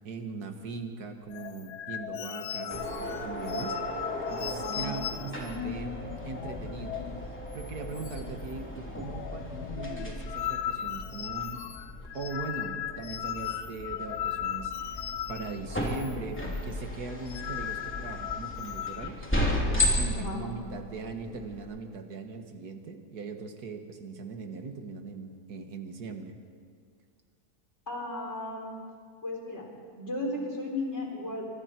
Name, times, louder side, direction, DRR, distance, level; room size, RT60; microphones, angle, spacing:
voice 1, 0.0-3.8 4.3-6.0 6.2-7.0 7.5-11.6 12.1-19.3 19.7-26.4, right 4 dB, 75° right, 5 dB, 2.1 m, -40 dB
sound 1, 1.3-7.3 7.5-7.7 8.0-8.5 8.8-16.1 16.4-16.6 17.1-19.1, left 11 dB, 90° left, 1.3 m, -37 dB
handicapped door, 2.7-21.6, left 1 dB, 5° left, 3.2 m, -35 dB
voice 2, 27.9-28.8 29.2-29.7 30.0-31.5, left 2 dB, 45° left, -1 dB, 4.4 m, -35 dB
25.0 x 24.5 x 4.5 m, 2.1 s
omnidirectional pair, 1.7 m